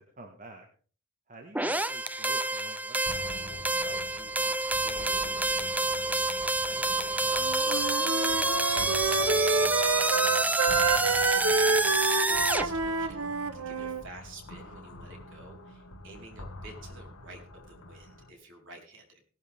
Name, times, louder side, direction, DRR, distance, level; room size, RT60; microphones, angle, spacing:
voice 1, 0.2-0.7 1.3-3.1 10.8-11.2, right 1 dB, 40° right, 3 dB, 1.7 m, -48 dB
sound 1, 1.5-12.7, right 2 dB, 5° right, 0.6 m, -28 dB
sound 2, 3.1-18.3, left 1 dB, 80° left, 1.6 m, -46 dB
voice 2, 3.4-6.9 7.2-10.1 11.3-13.3 13.5-19.1, right 2 dB, 60° right, 1 dB, 4.5 m, -50 dB
Wind instrument woodwind instrument, 7.3-14.0, right 4 dB, 90° right, 1.0 m, -28 dB
18.0 x 12.0 x 3.6 m, 0.43 s
head